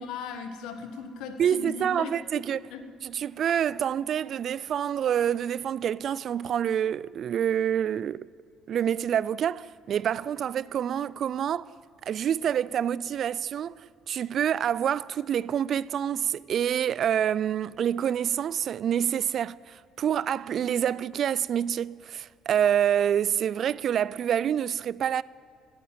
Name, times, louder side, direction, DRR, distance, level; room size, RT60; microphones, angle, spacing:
voice 1, 0.0-2.8, left 5 dB, 85° left, 1.4 m, -38 dB
voice 2, 1.4-2.6 3.0-8.3 8.7-11.7 12.1-25.2, right 9 dB, 55° right, 0.3 m, -27 dB
16.5 x 9.4 x 7.6 m
cardioid pair, 105°, 0 cm